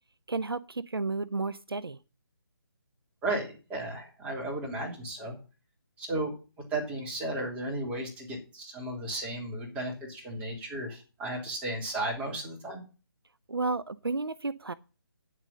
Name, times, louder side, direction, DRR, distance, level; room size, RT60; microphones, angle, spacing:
voice 1, 0.3-2.0 13.5-14.7, right 3 dB, 75° right, 16 dB, 0.6 m, -32 dB
voice 2, 3.2-5.4 6.0-6.3 6.6-12.8, right 2 dB, 10° right, -1 dB, 3.2 m, -34 dB
9.8 x 7.6 x 6.5 m, 0.33 s
figure-of-eight pair, 145°, 13 cm